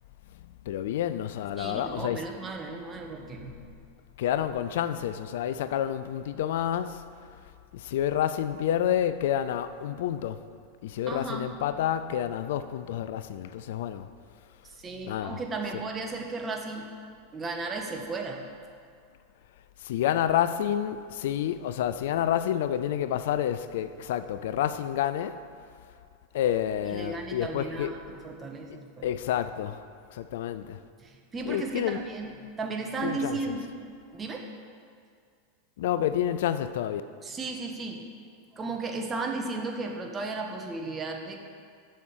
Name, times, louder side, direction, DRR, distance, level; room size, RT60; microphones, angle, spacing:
voice 1, 0.7-2.2 4.2-7.1 7.7-10.4 10.8-14.1 15.0-15.4 19.8-25.4 26.3-27.9 29.0-29.8 30.1-30.8 31.5-32.0 33.0-33.4 35.8-37.0, left 10 dB, 65° left, 0.4 m, -29 dB
voice 2, 1.6-3.7 11.1-11.5 14.7-16.9 17.3-18.4 26.9-29.1 31.0-33.7 34.1-34.5 37.2-38.0 38.5-41.4, right 3 dB, 25° right, 1.3 m, -35 dB
7.6 x 5.7 x 7.2 m
hypercardioid pair, 95°, 0 cm